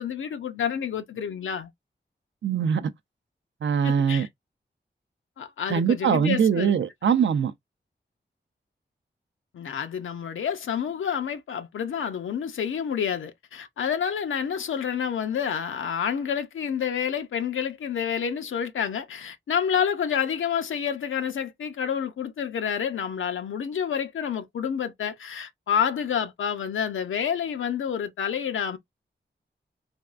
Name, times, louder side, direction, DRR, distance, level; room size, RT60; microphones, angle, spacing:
voice 1, 0.0-1.7 3.8-4.3 5.4-6.7 9.5-28.8, left 8 dB, 85° left, 0.5 m, -29 dB
voice 2, 2.4-2.9 3.6-4.3 5.7-7.5, right 7 dB, 70° right, 0.5 m, -22 dB
3.4 x 2.3 x 2.4 m
cardioid pair, 50°, 20 cm